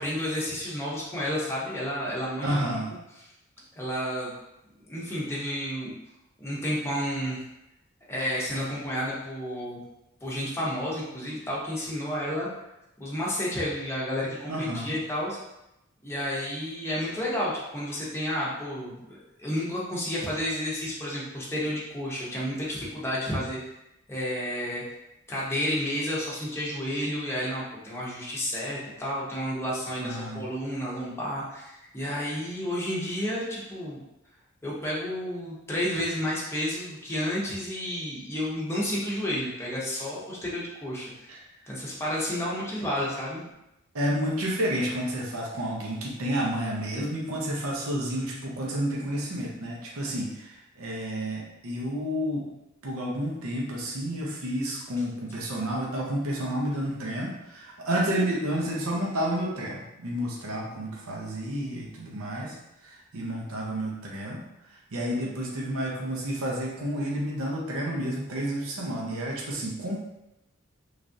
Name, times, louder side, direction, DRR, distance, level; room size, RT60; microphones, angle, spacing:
voice 1, 0.0-2.8 3.2-3.3 3.8-4.3 4.9-5.9 6.4-7.4 8.1-9.8 10.2-12.5 13.0-15.4 16.0-23.6 24.1-24.8 25.3-34.0 34.6-41.1 41.7-43.4, equal, 10° left, -6 dB, 0.7 m, -31 dB
voice 2, 2.4-2.9 14.5-14.9 30.0-30.4 41.3-41.4 43.9-52.4 52.8-62.6 62.8-64.4 64.9-70.0, equal, 70° right, -3 dB, 0.6 m, -30 dB
3.1 x 2.4 x 2.5 m, 0.89 s
head